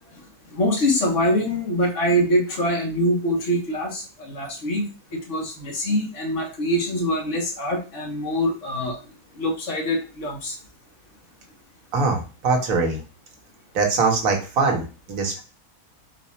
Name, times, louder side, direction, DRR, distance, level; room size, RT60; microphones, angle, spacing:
voice 1, 0.5-9.0 9.3-10.6, equal, 55° left, 1 dB, 1.4 m, -24 dB
voice 2, 11.9-13.0 13.7-15.4, right 4 dB, 65° right, 2 dB, 1.4 m, -22 dB
4.8 x 2.4 x 4.1 m, 0.33 s
omnidirectional pair, 1.6 m